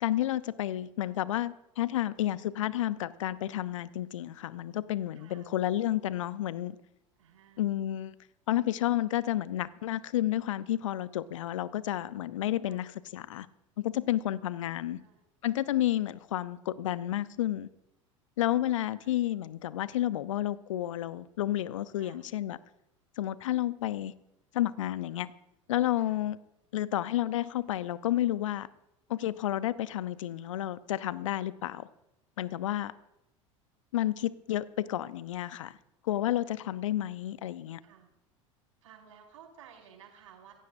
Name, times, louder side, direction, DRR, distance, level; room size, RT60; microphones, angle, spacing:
voice 1, 0.0-6.8 7.6-8.1 8.5-13.5 13.8-15.0 15.4-17.7 18.4-22.6 23.2-24.1 24.5-25.3 25.7-26.4 26.7-28.7 29.1-31.9 32.4-32.9 33.9-35.8 36.0-37.8, left 13 dB, 70° left, 0.8 m, -31 dB
voice 2, 5.1-5.5 7.2-7.7 12.7-12.8 14.6-15.2 18.8-19.1 21.9-22.2 26.0-26.2 32.6-33.0 37.8-38.1 38.8-40.5, right 8 dB, 70° right, 5.2 m, -56 dB
27.0 x 15.0 x 2.6 m
figure-of-eight pair, 75°, 17 cm